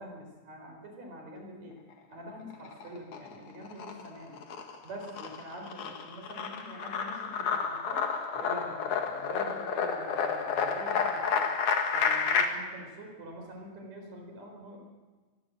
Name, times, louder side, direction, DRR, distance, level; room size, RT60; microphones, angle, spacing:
voice 1, 0.0-1.8 2.1-4.4 4.8-8.1 8.3-11.5 11.9-14.8, equal, 65° right, 2 dB, 5.7 m, -45 dB
sound 1, 2.5-3.3 3.7-12.5, left 6 dB, 80° left, 3.4 m, -30 dB
25.0 x 22.5 x 7.7 m, 1.4 s
omnidirectional pair, 3.3 m